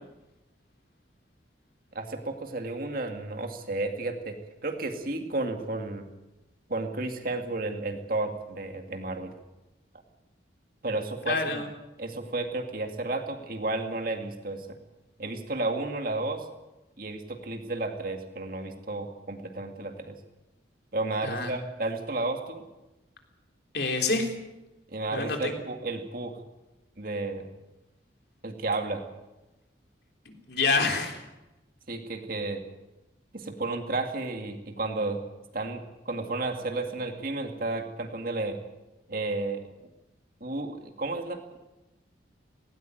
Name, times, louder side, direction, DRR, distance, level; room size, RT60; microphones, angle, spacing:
voice 1, 1.9-6.1 6.7-9.3 10.8-11.6 12.0-14.7 15.2-16.5 17.0-20.2 20.9-22.7 24.9-26.4 27.0-27.4 28.4-29.1 31.9-32.6 33.3-35.2 35.5-38.6 39.1-39.6 40.4-41.6, right 2 dB, 50° right, 5 dB, 2.3 m, -32 dB
voice 2, 11.3-11.7 21.2-21.6 23.7-24.3 25.1-25.5 30.3-31.2, left 3 dB, 55° left, 3 dB, 3.6 m, -27 dB
18.5 x 18.5 x 9.2 m, 1.0 s
head